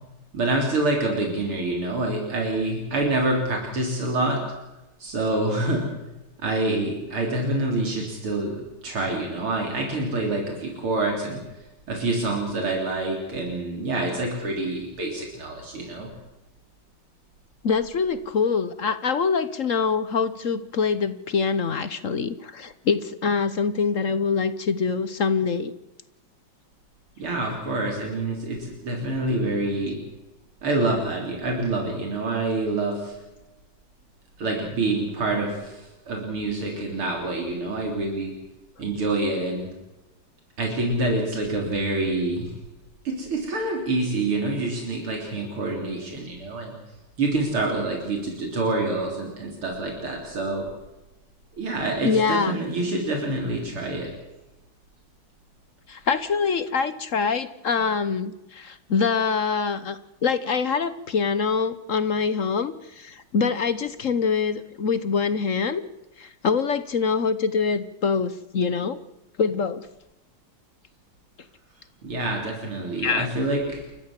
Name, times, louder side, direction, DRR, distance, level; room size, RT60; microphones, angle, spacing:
voice 1, 0.3-4.4 5.0-5.9 6.4-11.4 11.9-16.1 27.2-30.0 30.6-33.2 34.4-38.3 38.8-39.7 40.6-42.5 43.0-46.8 47.2-50.7 51.6-54.1 72.0-73.8, right 2 dB, 80° right, 1 dB, 4.5 m, -26 dB
voice 2, 17.6-25.7 52.0-52.6 55.9-65.8 66.2-69.0 69.4-69.9 73.0-73.3, left 5 dB, 50° left, 13 dB, 1.0 m, -24 dB
29.5 x 14.0 x 7.5 m, 1.0 s
omnidirectional pair, 2.3 m